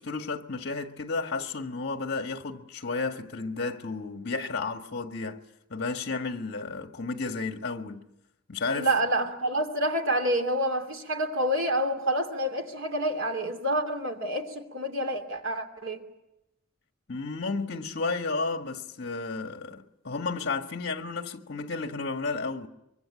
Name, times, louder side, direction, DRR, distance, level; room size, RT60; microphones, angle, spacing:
voice 1, 0.0-5.4 5.7-8.1 8.5-8.9 17.1-22.7, left 3 dB, 50° left, 1.8 m, -32 dB
voice 2, 8.7-16.0, right 1 dB, 65° right, 2.9 m, -28 dB
24.0 x 24.0 x 9.0 m
head